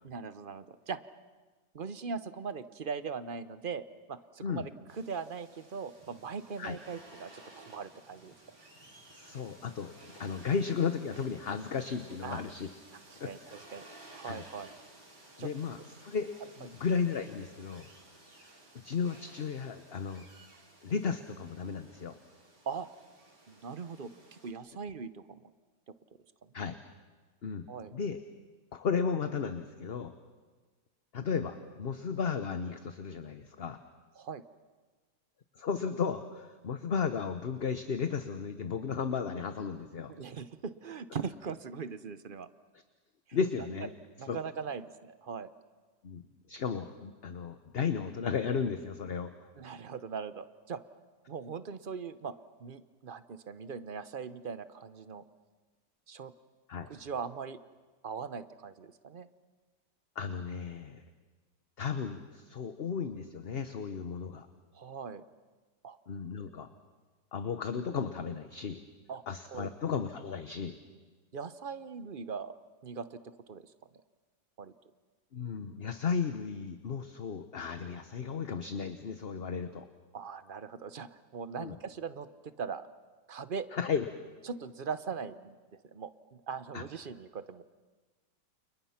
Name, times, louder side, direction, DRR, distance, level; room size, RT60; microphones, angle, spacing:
voice 1, 0.0-1.0 1.7-8.3 12.2-12.5 13.1-14.7 15.4-15.5 16.6-16.7 22.7-22.9 23.5-25.4 26.4-26.5 27.7-27.9 34.2-34.4 40.1-42.5 43.6-43.7 44.2-45.5 49.6-50.8 51.3-52.3 52.6-55.2 56.1-56.3 56.9-57.6 58.0-59.3 64.7-65.2 65.8-66.0 69.1-69.2 69.5-69.7 71.3-72.6 72.8-73.6 74.6-74.7 80.1-82.9 83.3-83.7 84.4-85.5 85.9-87.6, right 5 dB, 40° right, 13 dB, 0.8 m, -40 dB
sound 1, 4.9-24.5, right 2 dB, 75° right, 5.6 m, -56 dB
voice 2, 9.1-12.7 13.2-13.5 14.3-14.5 15.4-16.3 16.6-17.9 18.8-20.3 20.8-22.2 26.5-26.8 27.4-27.7 27.9-28.2 28.7-30.1 31.1-33.8 35.6-40.1 43.3-43.9 44.3-44.4 46.0-46.2 46.5-49.3 56.7-56.9 60.1-61.0 61.8-64.5 66.1-66.7 67.3-68.8 69.3-70.8 75.3-79.9 81.6-81.8 83.7-84.1 86.7-86.8, left 6 dB, 40° left, 9 dB, 1.1 m, -34 dB
30.0 x 29.0 x 5.9 m, 1.4 s
omnidirectional pair, 1.8 m